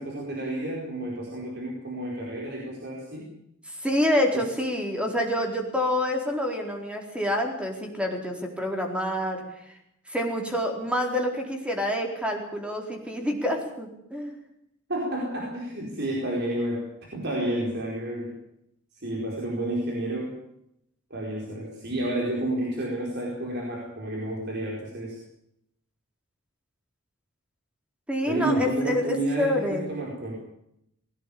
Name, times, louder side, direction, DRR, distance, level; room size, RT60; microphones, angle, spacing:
voice 1, 0.0-3.3 4.3-4.4 14.9-18.4 18.9-20.4 21.1-25.2 28.2-30.4, right 1 dB, 55° right, -1 dB, 4.7 m, -30 dB
voice 2, 3.8-9.4 10.1-14.4 28.1-29.9, left 1 dB, 5° right, 2 dB, 4.2 m, -27 dB
20.5 x 16.5 x 8.7 m, 0.77 s
head